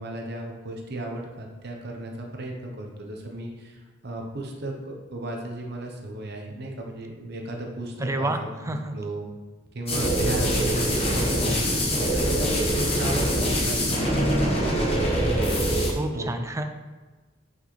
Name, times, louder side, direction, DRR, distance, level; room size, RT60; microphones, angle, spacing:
voice 1, 0.0-9.3 9.7-15.1 16.1-16.3, right 1 dB, 55° right, 1 dB, 1.0 m, -35 dB
voice 2, 8.0-8.4 8.6-9.0 15.9-16.6, right 2 dB, 15° right, 7 dB, 0.3 m, -28 dB
sound 1, 9.9-15.9, equal, 30° left, 1.4 m, -23 dB
6.2 x 5.4 x 3.3 m, 1.3 s
head